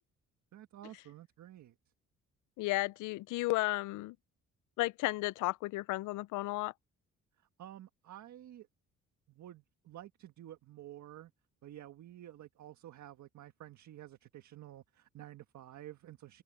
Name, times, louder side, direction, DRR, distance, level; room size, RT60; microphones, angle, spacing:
voice 1, 0.5-1.7 7.6-8.7 9.3-11.3 11.6-16.4, right 12 dB, 70° right, 1.6 m, -51 dB
voice 2, 2.6-4.2 4.8-6.7, left 20 dB, 90° left, 0.5 m, -33 dB
cardioid pair, 90°, 30 cm